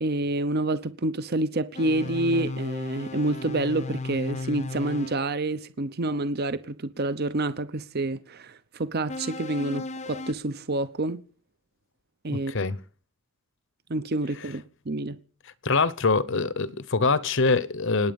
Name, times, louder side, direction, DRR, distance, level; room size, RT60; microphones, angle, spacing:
voice 1, 0.0-11.2 12.2-12.5 13.9-15.2, right 2 dB, 45° right, 0.8 m, -28 dB
sound 1, 1.7-5.2 9.1-10.3, left 3 dB, 30° left, 0.7 m, -35 dB
voice 2, 12.5-12.8 15.6-18.1, left 4 dB, 60° left, 0.9 m, -24 dB
27.0 x 9.5 x 5.3 m
head